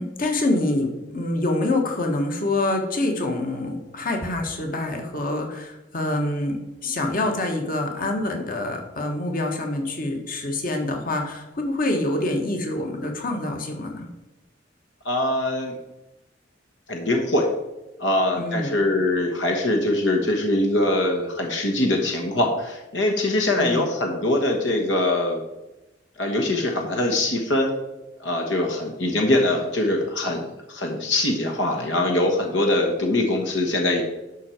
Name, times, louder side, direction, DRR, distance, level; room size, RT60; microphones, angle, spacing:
voice 1, 0.0-14.1 18.4-18.7 23.5-23.9, left 2 dB, 50° left, 3 dB, 1.6 m, -26 dB
voice 2, 15.0-15.8 16.9-17.5 18.0-25.4 26.2-27.7 28.2-34.0, left 1 dB, 75° left, 2 dB, 1.3 m, -23 dB
12.0 x 5.6 x 4.5 m, 1.0 s
head